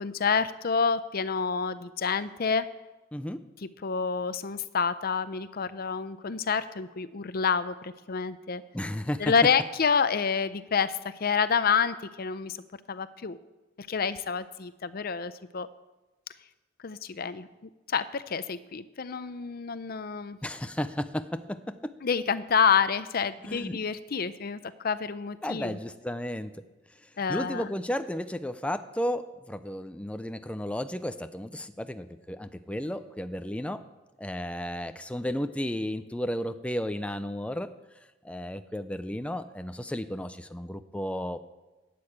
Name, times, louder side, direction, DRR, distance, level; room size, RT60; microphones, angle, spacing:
voice 1, 0.0-2.7 3.6-8.6 9.2-12.6 12.9-13.4 13.8-15.7 16.8-20.4 22.0-25.8 27.2-27.7, left 6 dB, 50° left, 14 dB, 0.6 m, -28 dB
voice 2, 3.1-3.4 8.7-9.3 20.4-21.9 23.4-23.8 25.4-26.6 27.3-33.8 34.2-37.7 38.2-41.4, equal, 5° left, 9 dB, 0.5 m, -33 dB
12.5 x 8.6 x 8.7 m, 1.1 s
head